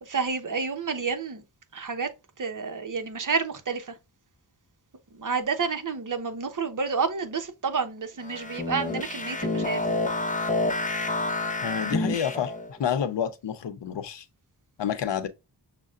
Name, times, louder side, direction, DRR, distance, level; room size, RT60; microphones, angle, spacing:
voice 1, 0.0-1.4 1.7-2.1 2.4-3.9 5.1-10.0, right 5 dB, 45° right, 1.0 m, -29 dB
sound 1, 8.2-12.7, left 2 dB, 20° left, 0.8 m, -28 dB
voice 2, 11.6-14.2 14.8-15.3, left 8 dB, 75° left, 0.9 m, -29 dB
6.6 x 2.3 x 2.4 m
cardioid pair, 70°, 43 cm